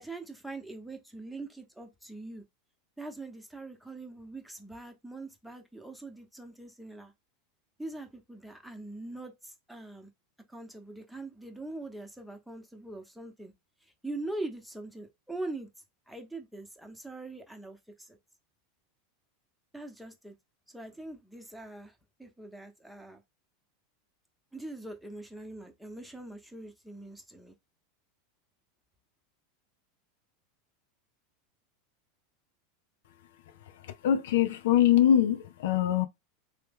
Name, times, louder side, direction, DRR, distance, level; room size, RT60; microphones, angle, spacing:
voice 1, 0.0-2.4 3.0-7.1 7.8-10.1 10.5-13.5 13.8-15.7 16.1-18.2 19.7-20.3 20.7-23.2 24.5-27.5, right 2 dB, ahead, 0.8 m, -42 dB
voice 2, 34.0-36.1, left 10 dB, 70° left, 0.3 m, -23 dB
3.2 x 2.1 x 3.5 m
hypercardioid pair, 90°, 0 cm